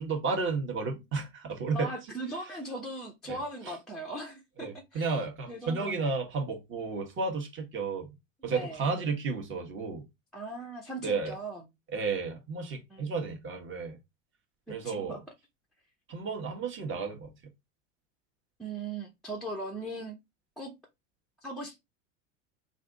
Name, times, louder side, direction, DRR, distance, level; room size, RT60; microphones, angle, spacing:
voice 1, 0.0-1.9 3.3-3.4 4.6-8.1 8.4-10.0 11.0-11.4 11.9-14.0 14.7-15.2 16.1-17.3, right 4 dB, 30° right, 1.3 m, -32 dB
voice 2, 1.7-5.2 5.5-6.1 8.4-8.8 10.3-11.7 12.9-13.3 14.7-15.2 18.6-20.2 20.6-20.7 21.4-21.8, right 2 dB, ahead, 0.7 m, -39 dB
3.3 x 2.5 x 3.7 m
hypercardioid pair, 90°, 39 cm